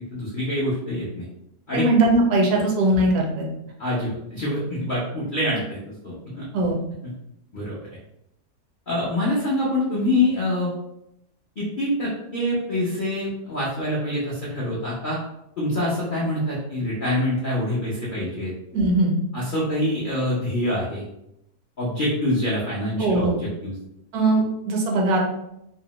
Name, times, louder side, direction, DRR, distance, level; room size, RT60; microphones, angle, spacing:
voice 1, 0.1-1.2 1.7-1.8 3.8-6.5 7.0-7.1 7.5-8.0 8.9-10.7 11.6-15.2 15.6-18.5 19.3-21.0 21.8-23.3 23.6-23.8, left 1 dB, 65° left, -7 dB, 0.5 m, -25 dB
voice 2, 1.7-3.5 6.5-6.8 18.7-19.1 23.0-23.3 24.1-25.2, right 2 dB, 75° right, 0 dB, 1.1 m, -20 dB
2.8 x 2.0 x 2.9 m, 0.84 s
omnidirectional pair, 1.7 m